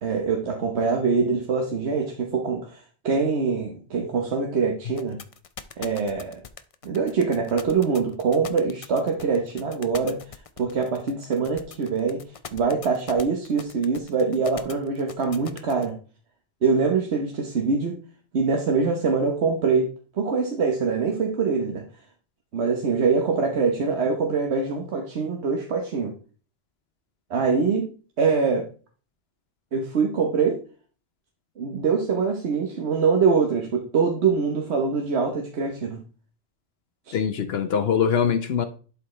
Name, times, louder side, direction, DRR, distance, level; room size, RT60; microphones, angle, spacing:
voice 1, 0.0-5.2 5.8-6.4 6.8-10.2 10.6-12.2 12.5-15.9 16.6-18.0 18.3-19.9 20.1-21.8 22.5-26.1 27.3-27.9 28.2-28.7 29.7-30.6 31.6-36.0 37.1-37.2, right 5 dB, 90° right, 1.3 m, -24 dB
sound 1, 5.0-15.9, left 6 dB, 45° left, 0.5 m, -41 dB
voice 2, 37.1-38.7, left 7 dB, 70° left, 0.9 m, -23 dB
11.5 x 4.5 x 3.2 m
omnidirectional pair, 1.1 m